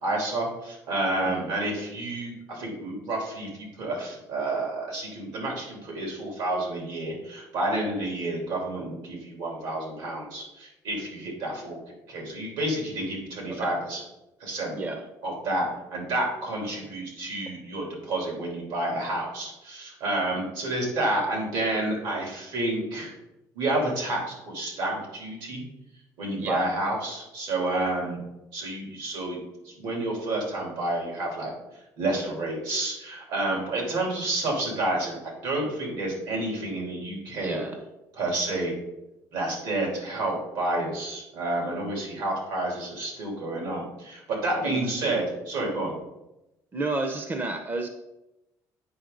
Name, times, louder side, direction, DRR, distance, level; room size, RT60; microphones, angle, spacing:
voice 1, 0.0-11.8 12.1-14.0 14.4-14.7 15.2-23.1 23.5-25.6 26.2-28.2 28.5-29.4 29.6-31.5 32.0-35.2 35.4-37.6 38.1-38.8 39.3-45.9, right 2 dB, 85° right, -1 dB, 3.1 m, -29 dB
voice 2, 26.4-26.7 37.4-37.8 44.6-44.9 46.7-47.9, right 2 dB, 25° right, 6 dB, 0.6 m, -31 dB
8.5 x 5.4 x 3.8 m, 0.93 s
cardioid pair, 135°, 7 cm